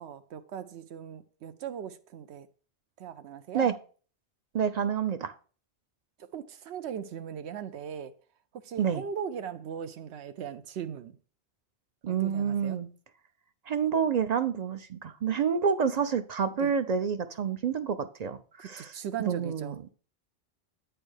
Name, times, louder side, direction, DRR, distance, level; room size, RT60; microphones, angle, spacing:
voice 1, 0.0-2.5 3.0-3.7 6.2-8.1 8.5-11.2 12.1-12.8 16.6-16.7 18.6-19.8, right 8 dB, 90° right, 0.9 m, -39 dB
voice 2, 4.5-5.3 8.8-9.0 12.0-12.9 13.7-18.9 19.3-19.7, right 7 dB, 55° right, 0.5 m, -28 dB
8.8 x 3.4 x 6.2 m
omnidirectional pair, 1.1 m